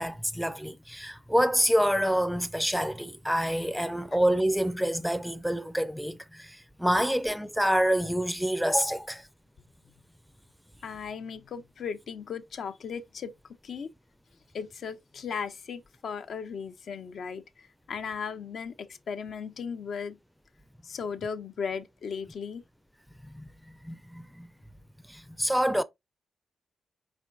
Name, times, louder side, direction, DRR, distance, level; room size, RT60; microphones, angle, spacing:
voice 1, 0.0-9.3 23.2-24.5 25.1-25.8, equal, ahead, 0.4 m, -27 dB
voice 2, 10.8-13.3 13.6-13.9 14.5-20.2 20.8-22.6, left 6 dB, 70° left, 0.5 m, -36 dB
4.4 x 4.3 x 2.3 m
cardioid pair, 65°, 0 cm